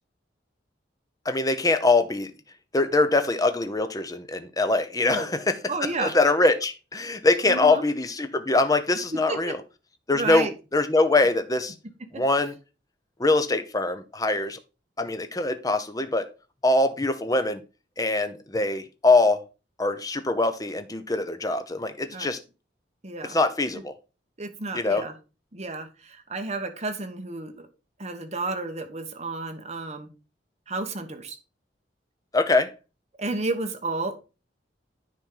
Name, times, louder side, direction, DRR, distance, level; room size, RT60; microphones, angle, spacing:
voice 1, 1.2-2.3 2.7-5.6 6.0-9.6 10.1-11.7 12.1-12.6 13.2-14.6 15.0-16.3 16.6-17.6 18.0-19.4 19.8-22.4 23.3-23.9 24.7-25.0 32.3-32.7, left 2 dB, 20° left, 0.8 m, -23 dB
voice 2, 5.7-6.1 7.5-7.9 9.1-9.5 10.1-10.5 12.1-12.2 22.1-22.3 23.0-23.4 24.4-25.1 25.5-27.7 28.0-30.1 30.7-31.4 33.2-34.2, right 3 dB, 40° right, 1.2 m, -31 dB
10.0 x 4.4 x 3.8 m
head